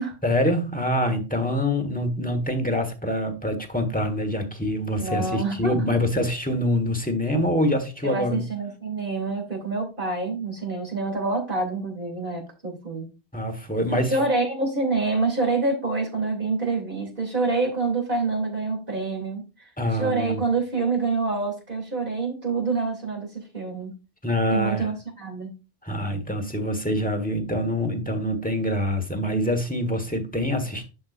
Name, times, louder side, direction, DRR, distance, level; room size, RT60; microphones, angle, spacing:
voice 1, 0.2-8.4 13.3-14.2 19.8-20.4 24.2-24.9 25.8-30.8, equal, 10° left, 1.4 m, -25 dB
voice 2, 5.0-5.8 8.0-13.1 13.9-19.4 19.9-23.9 24.5-25.5, right 3 dB, 50° right, 3.1 m, -27 dB
11.0 x 5.3 x 2.5 m
omnidirectional pair, 1.1 m